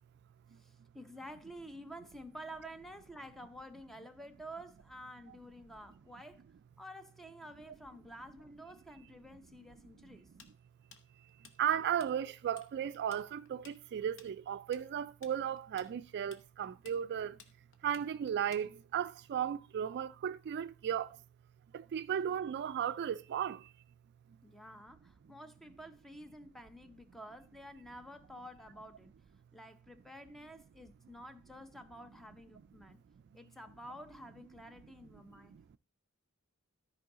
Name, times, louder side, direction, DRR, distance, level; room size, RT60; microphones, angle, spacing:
voice 1, 0.6-6.4 6.8-10.3 24.4-29.1 29.5-33.0 33.3-35.5, equal, ahead, 0.6 m, -50 dB
Tools, 10.4-12.1 12.4-12.7 12.9-19.0, left 5 dB, 60° left, 0.9 m, -57 dB
voice 2, 11.6-17.4 17.8-21.1 21.7-23.6, right 9 dB, 50° right, 0.3 m, -35 dB
13.5 x 4.7 x 3.7 m
head